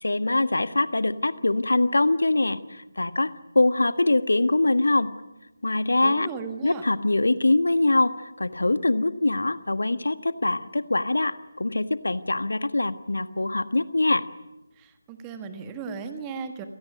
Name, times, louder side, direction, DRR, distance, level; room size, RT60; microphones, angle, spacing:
voice 1, 0.0-5.1 5.6-6.3 6.6-14.2, left 2 dB, 65° left, 12 dB, 1.5 m, -23 dB
voice 2, 6.0-6.8 14.7-16.7, right 5 dB, 15° right, 8 dB, 1.6 m, -36 dB
29.5 x 17.5 x 9.4 m, 1.0 s
figure-of-eight pair, 155°, 0 cm